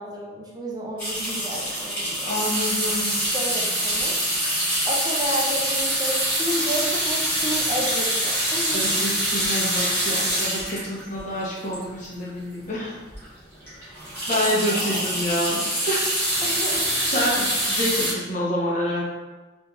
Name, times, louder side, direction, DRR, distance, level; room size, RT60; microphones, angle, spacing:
voice 1, 0.0-2.4 3.3-4.2 4.8-9.0 14.0-15.3 16.4-17.1, equal, 20° right, -3 dB, 0.4 m, -32 dB
sound 1, 1.0-12.3 12.8-12.9 13.1-13.3 13.6-18.1, right 1 dB, 10° left, 1.0 m, -25 dB
voice 2, 2.3-3.1 8.7-12.9 14.3-16.1 17.1-19.0, equal, 40° left, -5 dB, 0.7 m, -27 dB
3.2 x 2.5 x 2.3 m, 1.2 s
head